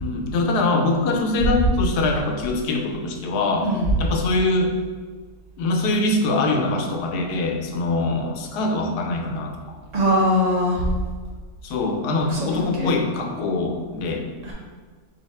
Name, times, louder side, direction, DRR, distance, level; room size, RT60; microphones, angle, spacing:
voice 1, 0.0-3.7 4.0-4.8 5.6-9.8 11.6-14.3, left 2 dB, 75° left, 2 dB, 1.1 m, -23 dB
voice 2, 9.9-10.8 12.3-12.9 14.4-14.5, left 1 dB, 30° right, -5 dB, 0.8 m, -21 dB
4.7 x 2.5 x 4.2 m, 1.5 s
omnidirectional pair, 1.8 m